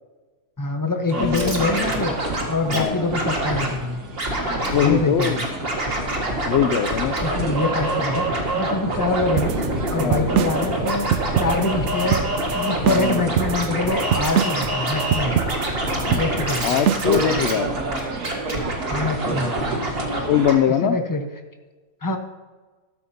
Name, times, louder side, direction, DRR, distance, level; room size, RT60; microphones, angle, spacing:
voice 1, 0.6-2.1 2.4-4.0 4.8-5.4 7.2-8.3 8.5-9.6 9.9-12.3 12.5-15.3 16.1-16.8 18.9-19.5 20.8-21.2 22.0-22.2, left 2 dB, 15° left, 4 dB, 1.0 m, -25 dB
Scratching (performance technique), 1.1-2.8 3.1-3.7 4.2-4.9 5.2-20.2 20.5-20.6, right 1 dB, 40° right, 2.1 m, -26 dB
sound 1, 1.1-20.5, right 2 dB, 85° right, 2.2 m, -33 dB
voice 2, 1.2-1.8 2.7-3.1 4.7-5.4 6.4-7.2 10.0-10.3 12.9-13.2 16.1-16.2 16.6-17.7 20.3-21.0, left 9 dB, 75° left, 8 dB, 0.6 m, -22 dB
sound 2, 9.4-17.2, right 9 dB, 70° right, 0.7 m, -24 dB
13.5 x 12.5 x 2.8 m, 1.3 s
omnidirectional pair, 1.6 m